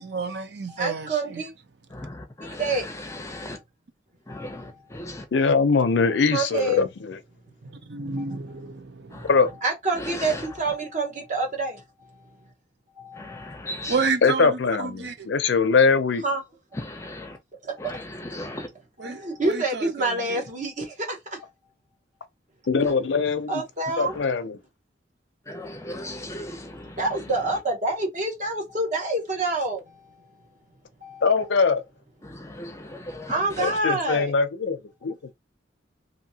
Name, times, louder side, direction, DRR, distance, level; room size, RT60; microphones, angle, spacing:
voice 1, 0.0-1.4 7.6-9.3 13.9-15.3 19.0-19.2 19.5-20.4, right 4 dB, 65° right, 0.6 m, -30 dB
voice 2, 0.7-1.5 2.4-3.6 4.3-4.8 6.3-6.8 8.2-8.3 9.6-12.2 13.0-13.6 16.2-16.4 17.6-18.0 19.0-21.5 23.5-24.2 27.0-30.2 31.0-31.3 33.3-34.3, right 2 dB, 40° right, 0.9 m, -28 dB
voice 3, 1.9-2.6 3.3-3.6 4.3-5.2 9.1-9.3 13.2-13.9 16.9-17.4 17.8-18.0 18.3-18.7 25.5-27.0 32.2-33.3, left 1 dB, 15° left, 0.5 m, -37 dB
voice 4, 5.3-7.2 9.3-9.5 14.2-16.2 22.7-23.5 24.0-24.6 31.2-31.8 33.6-35.3, left 4 dB, 70° left, 0.5 m, -22 dB
2.8 x 2.7 x 2.7 m
head